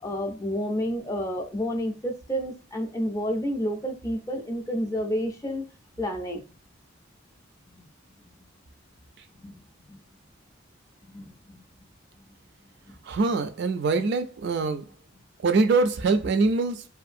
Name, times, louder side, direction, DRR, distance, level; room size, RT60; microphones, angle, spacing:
voice 1, 0.0-5.6 6.0-6.4 7.7-7.9 8.2-8.3 9.3-9.6 9.9-10.0 11.1-11.6 12.9-13.0, equal, 15° left, 0.4 m, -30 dB
voice 2, 13.0-14.9 15.4-16.9, right 3 dB, 60° right, 0.3 m, -23 dB
2.6 x 2.5 x 2.5 m
head